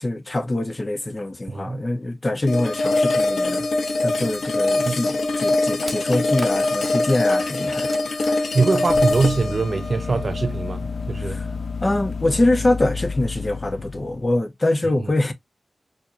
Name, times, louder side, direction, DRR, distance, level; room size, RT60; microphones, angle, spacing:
voice 1, 0.0-3.7 4.0-7.9 8.2-8.4 11.2-11.4 11.8-15.3, left 2 dB, 30° left, 0.8 m, -24 dB
voice 2, 1.5-1.8 4.8-5.0 8.5-10.8 11.1-11.4, right 4 dB, 55° right, 0.4 m, -22 dB
sound 1, 2.5-11.5, left 2 dB, 85° left, 0.8 m, -23 dB
sound 2, 4.3-9.4 9.7-10.6, right 1 dB, 20° right, 0.8 m, -40 dB
sound 3, 8.5-14.4, left 4 dB, 60° left, 0.4 m, -31 dB
4.3 x 2.9 x 2.3 m
wide cardioid pair, 65°, 0 cm